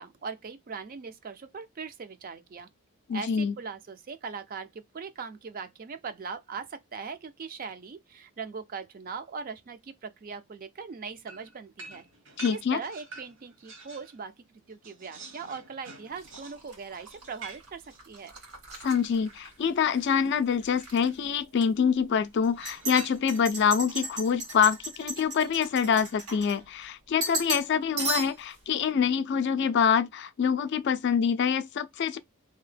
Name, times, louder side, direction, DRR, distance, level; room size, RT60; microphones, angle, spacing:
voice 1, 0.0-2.7 3.1-12.0 12.5-14.3 14.7-18.3, right 5 dB, 40° right, 0.3 m, -40 dB
voice 2, 3.1-3.6 12.4-12.8 18.8-32.2, left 7 dB, 50° left, 0.3 m, -26 dB
sound 1, 11.3-14.2 14.5-19.6 20.6-21.2 22.5-23.6, right 3 dB, 60° right, 0.9 m, -47 dB
sound 2, 16.2-20.1 20.4-21.1 21.6-21.7 22.4-26.8 27.2-27.7 28.0-28.6, right 3 dB, 80° right, 1.6 m, -36 dB
2.8 x 2.1 x 3.2 m
head